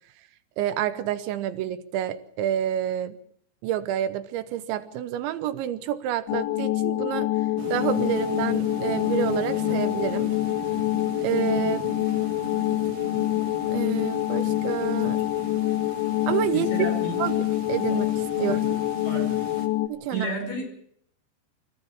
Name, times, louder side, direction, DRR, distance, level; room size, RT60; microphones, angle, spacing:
voice 1, 0.6-3.2 3.6-7.3 7.7-10.3 11.2-11.9 13.7-15.2 16.3-16.7 17.2-17.4 17.7-18.1 18.4-18.8 19.9-20.3, right 11 dB, 80° right, 12 dB, 3.2 m, -28 dB
sound 1, 6.3-19.9, left 16 dB, 80° left, 4.2 m, -26 dB
sound 2, 7.6-19.7, right 7 dB, 60° right, 3.9 m, -40 dB
voice 2, 16.5-17.2 17.9-18.0 18.4-18.7 19.0-19.4 20.1-20.8, right 1 dB, 50° left, 3 dB, 6.8 m, -32 dB
25.5 x 15.5 x 7.2 m, 0.66 s
omnidirectional pair, 5.3 m